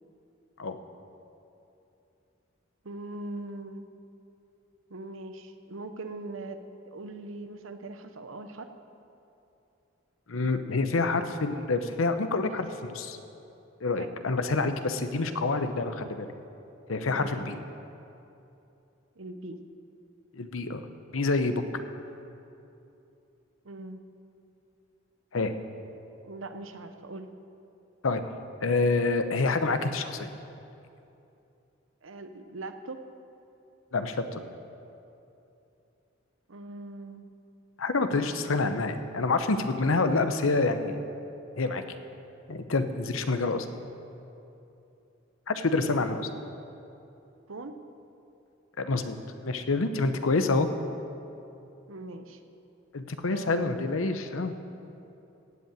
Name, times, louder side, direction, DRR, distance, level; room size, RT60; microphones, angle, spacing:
voice 1, 2.8-3.9 4.9-8.7 14.0-14.1 17.2-17.5 19.2-19.6 23.6-24.0 26.2-27.3 32.0-33.0 36.5-37.3 47.5-47.7 51.9-52.4 53.3-53.7, right 2 dB, 80° right, 8 dB, 0.8 m, -41 dB
voice 2, 10.3-13.2 13.8-16.3 16.9-17.6 20.3-20.8 21.1-21.6 25.3-25.5 28.0-28.3 28.6-30.3 33.9-34.4 37.8-41.0 41.6-41.8 42.5-43.7 45.5-46.3 48.8-49.2 49.4-50.7 52.9-54.5, left 3 dB, 90° left, 9 dB, 0.8 m, -27 dB
16.0 x 5.6 x 9.1 m, 2.8 s
head